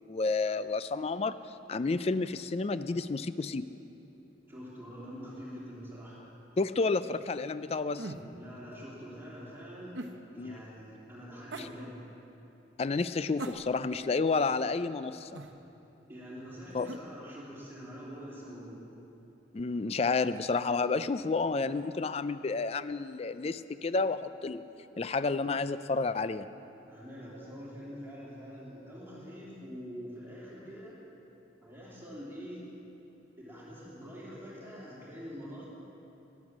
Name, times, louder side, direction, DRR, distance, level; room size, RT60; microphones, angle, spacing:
voice 1, 0.1-3.7 6.6-8.1 10.4-10.6 12.8-15.3 16.7-16.9 19.5-24.6 25.0-26.5, left 4 dB, 35° left, 13 dB, 0.4 m, -30 dB
voice 2, 4.5-6.2 8.3-10.0 10.3-12.0 16.1-18.8 26.9-31.0 31.6-32.7 33.4-35.7, equal, 10° right, -6 dB, 2.9 m, -45 dB
sound 1, 7.9-8.3 9.9-10.2 11.5-11.7 13.4-14.0 15.3-15.6 16.8-17.1, right 2 dB, 75° right, 0.9 m, -40 dB
13.0 x 11.0 x 7.3 m, 3.0 s
head